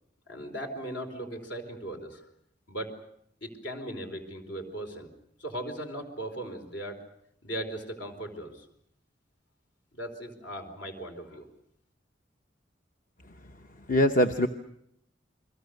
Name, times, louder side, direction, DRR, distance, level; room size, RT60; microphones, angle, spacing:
voice 1, 0.3-2.3 2.7-3.0 3.4-5.1 5.4-7.0 7.4-8.7 9.9-11.5, right 1 dB, 70° left, 5 dB, 4.3 m, -38 dB
voice 2, 13.2-14.5, left 1 dB, 45° left, 7 dB, 0.9 m, -25 dB
29.5 x 22.5 x 6.6 m, 0.74 s
head